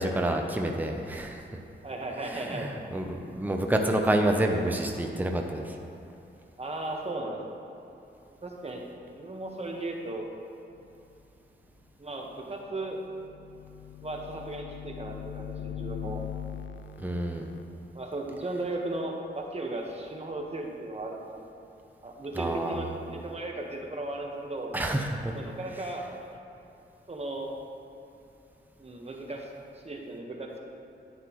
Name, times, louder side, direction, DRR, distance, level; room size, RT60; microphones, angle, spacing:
voice 1, 0.0-1.4 2.2-5.8 17.0-17.5 22.3-22.8 24.7-25.3, right 1 dB, 10° right, 3 dB, 0.7 m, -28 dB
voice 2, 1.8-2.7 6.6-7.6 8.4-8.9 9.1-10.3 12.0-13.0 14.0-16.2 17.9-21.2 22.0-24.7 25.3-26.2 27.1-27.5 28.8-29.5 29.8-30.6, right 2 dB, 30° right, 0 dB, 1.4 m, -36 dB
sound 1, 12.9-17.6, left 10 dB, 75° left, 0.4 m, -40 dB
9.7 x 9.3 x 3.2 m, 2.8 s
cardioid pair, 65°, 20 cm